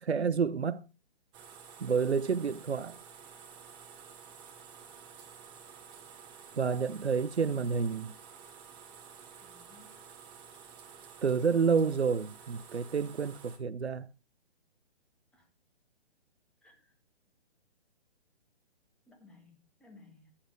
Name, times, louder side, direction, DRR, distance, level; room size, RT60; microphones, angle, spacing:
voice 1, 0.0-0.8 1.8-2.9 6.5-8.1 11.2-14.1, right 6 dB, 90° right, 0.6 m, -29 dB
sound 1, 1.3-13.6, right 7 dB, 15° right, 0.9 m, -51 dB
voice 2, 9.4-10.0 15.3-15.5 16.6-16.9 19.1-20.3, left 3 dB, 5° left, 1.2 m, -58 dB
9.9 x 5.7 x 4.6 m
figure-of-eight pair, 135°, 32 cm